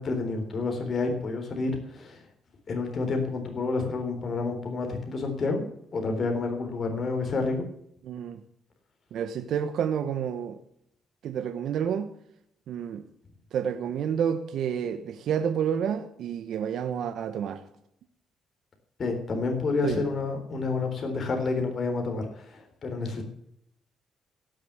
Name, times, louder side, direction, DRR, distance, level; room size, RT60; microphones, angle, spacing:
voice 1, 0.0-2.2 2.7-5.6 5.9-7.7 19.0-23.2, left 3 dB, 45° left, 3.7 m, -29 dB
voice 2, 8.0-8.4 9.1-10.6 11.2-12.1 12.7-13.1 13.5-17.6 19.8-20.0, right 8 dB, 75° right, 1.0 m, -29 dB
16.5 x 6.7 x 9.6 m
cardioid pair, 90°, 0 cm